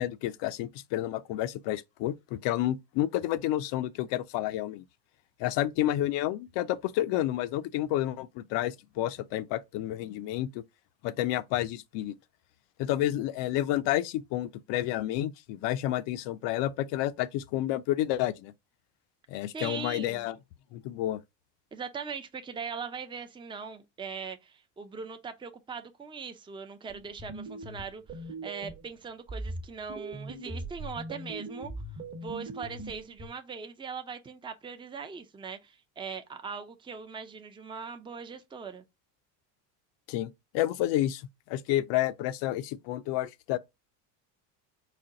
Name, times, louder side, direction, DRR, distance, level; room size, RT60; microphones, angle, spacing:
voice 1, 0.0-4.8 5.4-10.6 11.0-12.1 12.8-18.5 19.3-20.4 20.7-21.2 40.1-43.6, left 13 dB, 60° left, 0.6 m, -30 dB
voice 2, 19.5-20.2 21.7-31.7 32.2-38.8, right 5 dB, 10° right, 0.5 m, -40 dB
sound 1, 26.9-28.9 29.3-33.3, right 2 dB, 30° right, 0.9 m, -40 dB
4.2 x 2.2 x 3.7 m
supercardioid pair, 85°, 48 cm